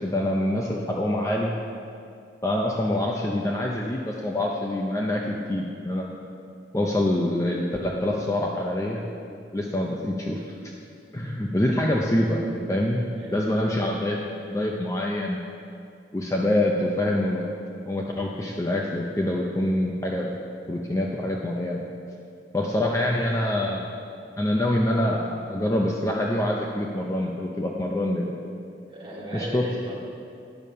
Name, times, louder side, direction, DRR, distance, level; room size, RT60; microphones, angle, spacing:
voice 1, 0.0-1.6 2.4-6.1 6.7-9.0 9.5-10.4 11.1-13.0 13.3-14.2 14.5-15.4 16.1-17.4 17.9-20.3 20.7-21.8 22.5-23.9 24.4-28.3 29.3-29.7, left 1 dB, 15° left, -1 dB, 0.5 m, -25 dB
voice 2, 13.1-13.5 28.9-29.9, equal, 30° right, -6 dB, 2.2 m, -38 dB
9.2 x 6.8 x 5.5 m, 2.4 s
head